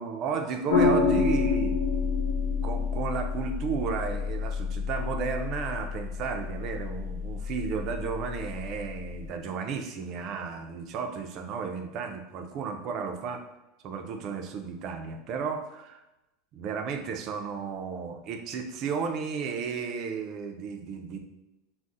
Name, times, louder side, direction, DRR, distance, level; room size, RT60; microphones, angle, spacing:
voice 1, 0.0-1.8 2.6-13.4 13.8-16.0 16.5-21.2, right 6 dB, 40° right, 5 dB, 0.3 m, -33 dB
sound 1, 0.7-9.3, left 5 dB, 80° left, 0.5 m, -29 dB
2.4 x 2.0 x 3.8 m, 0.97 s
supercardioid pair, 160°, 0 cm